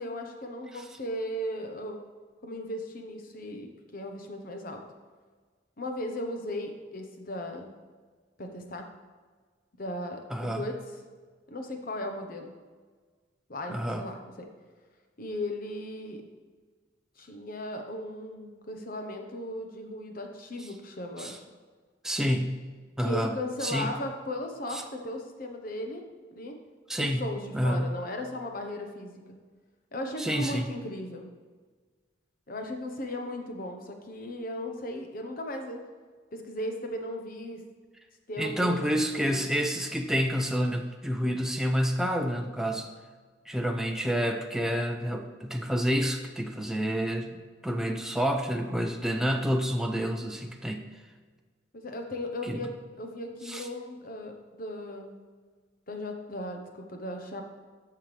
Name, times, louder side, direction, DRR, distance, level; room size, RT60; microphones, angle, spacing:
voice 1, 0.0-2.0 2.4-4.8 5.8-7.7 8.4-8.9 9.8-10.8 11.5-12.5 13.5-14.5 15.2-16.2 17.2-21.4 23.0-26.0 26.3-26.6 27.0-29.1 29.9-31.3 32.5-35.8 36.3-37.6 38.3-39.5 51.7-55.1 55.9-57.4, left 1 dB, 50° left, 4 dB, 1.1 m, -36 dB
voice 2, 10.3-10.7 13.7-14.0 21.2-21.4 22.0-22.6 23.0-23.3 23.6-23.9 24.7-24.8 26.9-27.3 27.5-27.9 30.2-30.7 38.4-42.9 43.5-50.9 52.5-52.6 53.5-53.7, equal, 5° right, 3 dB, 0.5 m, -28 dB
13.5 x 5.8 x 3.4 m, 1.5 s
head